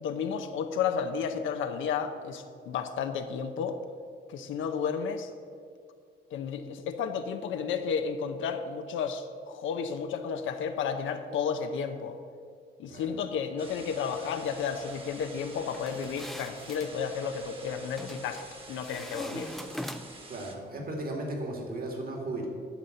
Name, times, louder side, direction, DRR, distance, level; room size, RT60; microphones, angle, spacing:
voice 1, 0.0-3.8 4.3-5.3 6.3-12.2 12.8-18.4 18.7-19.5, left 6 dB, 80° left, 7 dB, 0.7 m, -32 dB
sound 1, 13.6-20.5, right 2 dB, 25° right, 1.6 m, -48 dB
sound 2, 15.7-16.9 18.0-18.5 18.8-20.3, equal, ahead, 0.4 m, -41 dB
voice 2, 20.3-22.5, right 1 dB, 50° right, 1 dB, 2.2 m, -35 dB
11.0 x 4.2 x 7.7 m, 2.2 s
cardioid pair, 90°, 20 cm